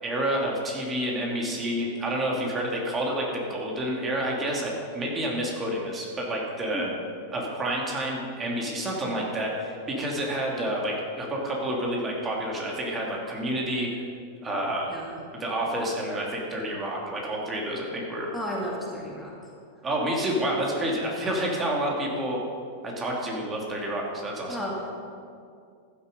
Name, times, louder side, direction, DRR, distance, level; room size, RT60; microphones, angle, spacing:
voice 1, 0.0-6.9 7.3-13.9 14.4-14.9 15.3-18.3 19.8-22.4 22.8-24.6, right 1 dB, 20° right, -2 dB, 2.9 m, -29 dB
voice 2, 14.9-15.2 18.3-19.3 24.5-24.8, equal, 5° left, -4 dB, 2.4 m, -33 dB
15.0 x 8.6 x 5.4 m, 2.3 s
hypercardioid pair, 95°, 0 cm